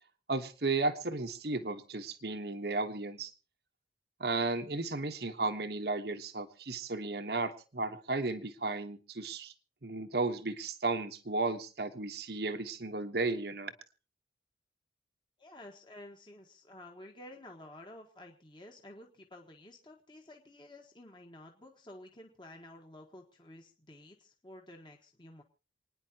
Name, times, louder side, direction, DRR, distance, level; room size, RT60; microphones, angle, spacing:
voice 1, 0.3-3.3 4.2-9.5 9.8-13.7, right 3 dB, 55° right, 8 dB, 1.2 m, -34 dB
voice 2, 15.4-25.4, left 1 dB, 25° left, 2 dB, 1.4 m, -52 dB
28.5 x 10.0 x 2.9 m, 0.35 s
head